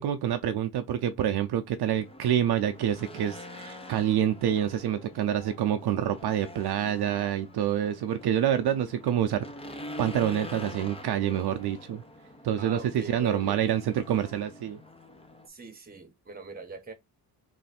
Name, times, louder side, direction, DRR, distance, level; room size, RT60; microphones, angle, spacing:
voice 1, 0.0-12.0 12.4-14.8, right 10 dB, 65° right, 0.6 m, -27 dB
Race car auto racing / Engine, 1.8-15.5, left 1 dB, 15° left, 0.6 m, -45 dB
voice 2, 12.6-13.7 15.5-16.9, right 4 dB, 20° right, 1.1 m, -41 dB
3.2 x 2.7 x 4.1 m
cardioid pair, 130°, 41 cm